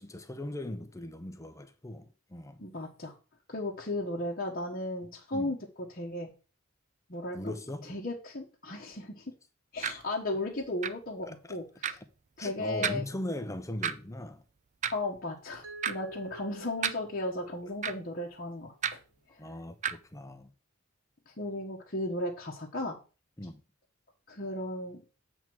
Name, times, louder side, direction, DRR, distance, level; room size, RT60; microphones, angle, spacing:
voice 1, 0.0-2.6 5.3-5.5 7.3-8.0 11.2-11.6 12.4-14.4 19.4-20.5 23.4-23.6, left 1 dB, 15° left, 0.7 m, -39 dB
voice 2, 2.6-3.1 3.5-5.6 5.9-6.3 7.1-7.5 7.8-9.2 9.7-12.0 12.4-13.0 14.9-19.0 21.3-23.0 24.3-25.0, left 1 dB, 45° left, 1.1 m, -35 dB
sound 1, 9.8-9.9 10.8-10.9 11.8-11.9 12.8-13.0 13.8-13.9 14.8-15.0 15.8-15.9 16.8-16.9 17.8-17.9 18.8-19.0 19.8-19.9, right 7 dB, 35° right, 0.5 m, -30 dB
Mallet percussion, 15.6-18.5, right 1 dB, 80° right, 1.1 m, -48 dB
8.0 x 3.6 x 6.0 m
head